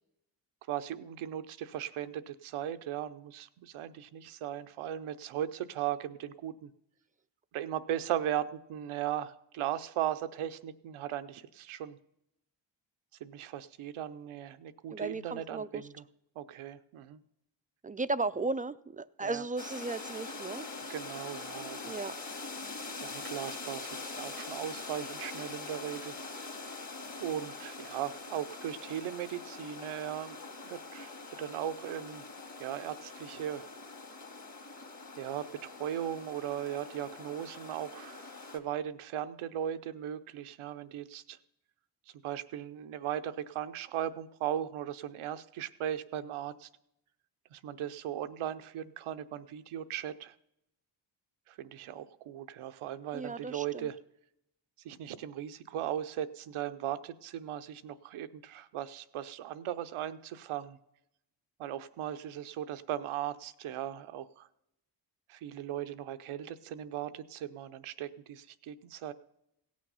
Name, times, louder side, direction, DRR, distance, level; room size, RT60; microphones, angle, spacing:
voice 1, 0.7-6.7 7.5-12.0 13.2-16.0 16.4-17.2 19.2-19.4 20.9-22.0 23.0-26.6 27.2-31.1 31.4-32.2 32.6-33.7 35.2-41.4 42.2-46.7 47.5-50.3 51.5-54.0 54.8-60.8 61.6-64.5 65.3-69.1, right 11 dB, 85° right, 11 dB, 0.7 m, -38 dB
voice 2, 14.9-15.9 17.8-20.7 21.8-22.1 53.1-53.9, right 3 dB, 20° right, 14 dB, 0.3 m, -35 dB
sound 1, 19.6-38.6, left 3 dB, 35° left, 1.8 m, -43 dB
16.5 x 6.4 x 5.5 m, 0.81 s
supercardioid pair, 50°, 48 cm